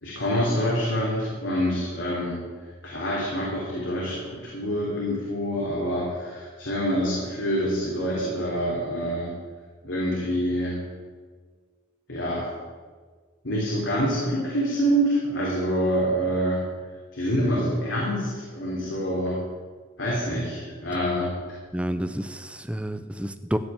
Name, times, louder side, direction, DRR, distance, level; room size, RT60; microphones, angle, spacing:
voice 1, 0.0-2.4 2.8-9.3 9.8-10.8 12.1-12.5 13.4-16.7 17.1-19.4 20.0-21.3, equal, 85° left, -5 dB, 3.4 m, -26 dB
voice 2, 21.7-23.6, equal, 5° right, 10 dB, 0.6 m, -29 dB
15.0 x 5.9 x 8.9 m, 1.5 s
head